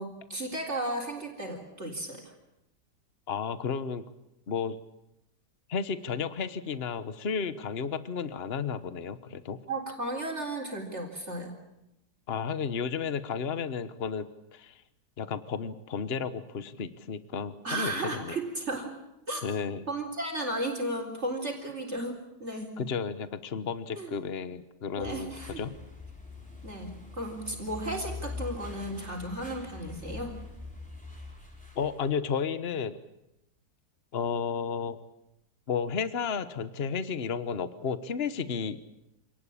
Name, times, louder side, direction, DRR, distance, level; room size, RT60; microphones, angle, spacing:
voice 1, 0.0-2.3 9.7-11.6 17.6-18.9 19.3-19.4 19.9-22.8 23.9-24.1 25.0-25.6 26.6-30.4, right 1 dB, 40° right, 3 dB, 4.1 m, -34 dB
voice 2, 3.3-4.0 4.5-4.8 5.7-9.6 12.3-14.8 15.2-18.3 19.4-19.8 22.8-25.7 31.7-33.0 34.1-35.0 35.7-38.8, left 6 dB, 40° left, 12 dB, 1.3 m, -32 dB
sound 1, 25.0-32.1, left 4 dB, 5° left, 5.0 m, -43 dB
27.0 x 18.5 x 8.6 m, 0.86 s
omnidirectional pair, 1.7 m